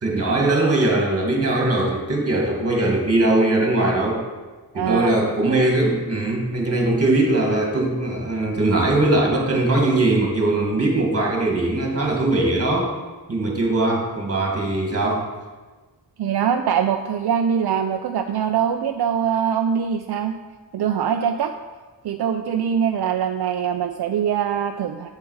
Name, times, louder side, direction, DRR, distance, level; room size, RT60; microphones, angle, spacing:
voice 1, 0.0-4.2 4.7-12.9 13.3-15.3, right 2 dB, 35° right, 0 dB, 1.8 m, -20 dB
voice 2, 4.7-5.2 16.2-20.3 20.7-21.5 22.0-25.1, right 8 dB, 75° right, 5 dB, 0.5 m, -23 dB
7.7 x 7.0 x 4.7 m, 1.3 s
wide cardioid pair, 140°, 39 cm